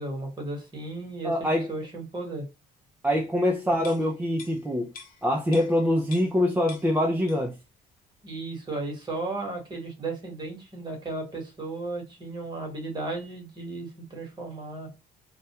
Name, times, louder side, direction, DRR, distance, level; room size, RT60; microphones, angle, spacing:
voice 1, 0.0-2.5 8.2-14.9, right 2 dB, 25° right, 1.0 m, -35 dB
voice 2, 1.2-1.7 3.0-4.9 5.2-7.6, left 1 dB, 10° right, 0.4 m, -24 dB
sound 1, 3.8-6.4 6.7-7.6 8.0-8.1, left 5 dB, 60° left, 0.7 m, -47 dB
2.2 x 2.2 x 2.8 m
cardioid pair, 110°, 17 cm